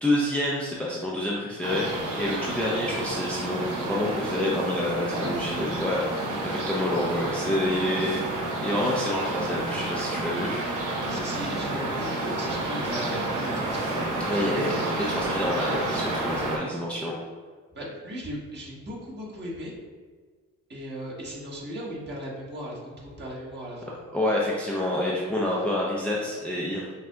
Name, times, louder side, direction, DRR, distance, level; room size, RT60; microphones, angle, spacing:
voice 1, 0.0-8.2 8.6-10.7 14.2-17.2 24.1-26.9, left 1 dB, 5° left, -4 dB, 0.5 m, -28 dB
sound 1, 1.6-16.6, right 2 dB, 80° right, 1.1 m, -30 dB
voice 2, 11.1-14.8 17.7-19.8 20.7-23.9, equal, 35° right, -5 dB, 1.3 m, -37 dB
5.9 x 2.7 x 2.3 m, 1.5 s
cardioid pair, 90°, 30 cm